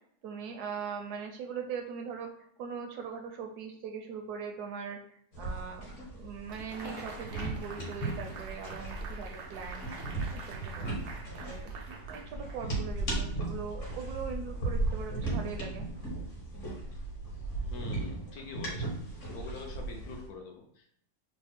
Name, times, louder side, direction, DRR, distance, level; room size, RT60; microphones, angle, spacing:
voice 1, 0.2-2.3 2.6-9.9 10.3-10.9 11.4-15.9 16.2-16.3, right 6 dB, 70° right, 3 dB, 1.0 m, -41 dB
sound 1, 5.3-20.3, right 2 dB, 50° left, 1.3 m, -36 dB
sound 2, 6.5-13.0, right 4 dB, 85° right, 0.6 m, -47 dB
voice 2, 17.7-18.9 19.3-20.9, left 4 dB, 70° left, 1 dB, 1.0 m, -45 dB
3.3 x 2.0 x 4.2 m, 0.66 s
omnidirectional pair, 1.9 m